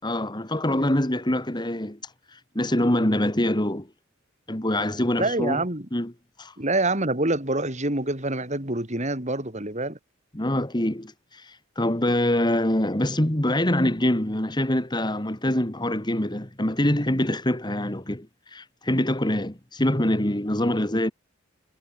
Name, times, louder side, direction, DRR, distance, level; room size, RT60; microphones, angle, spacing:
voice 1, 0.0-2.0 2.3-3.9 4.5-5.6 5.9-6.1 6.4-6.5 10.3-21.1, left 1 dB, 20° left, 2.3 m, -25 dB
voice 2, 5.2-5.9 6.6-10.0, right 2 dB, 35° right, 4.8 m, -26 dB
head